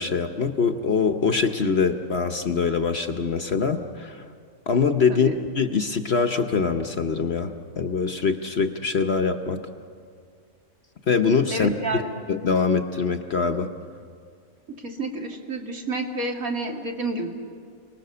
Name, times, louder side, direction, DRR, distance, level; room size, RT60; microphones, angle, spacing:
voice 1, 0.0-4.3 4.7-9.6 11.1-12.0 12.3-13.7, left 5 dB, 50° left, 7 dB, 1.0 m, -23 dB
voice 2, 11.5-12.1 14.8-17.3, right 2 dB, 65° right, 1 dB, 2.7 m, -29 dB
29.5 x 19.5 x 6.8 m, 2.2 s
omnidirectional pair, 1.6 m